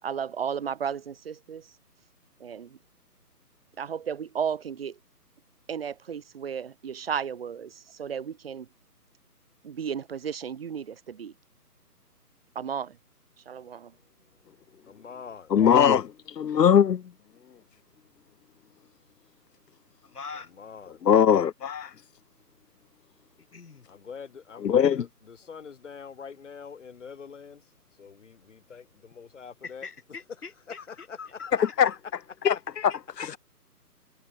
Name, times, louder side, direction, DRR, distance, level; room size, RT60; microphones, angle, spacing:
voice 1, 0.0-1.7 2.4-2.8 3.8-5.0 5.7-8.7 9.6-11.3 12.5-13.0 13.4-13.9, right 7 dB, 35° right, 3.4 m, -34 dB
voice 2, 14.9-15.5 20.5-21.0 23.9-27.6 28.0-29.9 30.7-32.0, left 6 dB, 50° left, 2.9 m, -44 dB
voice 3, 15.5-17.0 21.0-21.9 24.6-25.0 31.6-31.9 32.4-33.4, left 8 dB, 90° left, 0.8 m, -21 dB
voice 4, 20.1-20.5 23.5-23.8 29.6-30.8 32.9-33.3, left 5 dB, 70° left, 3.4 m, -42 dB
hypercardioid pair, 165°, 48 cm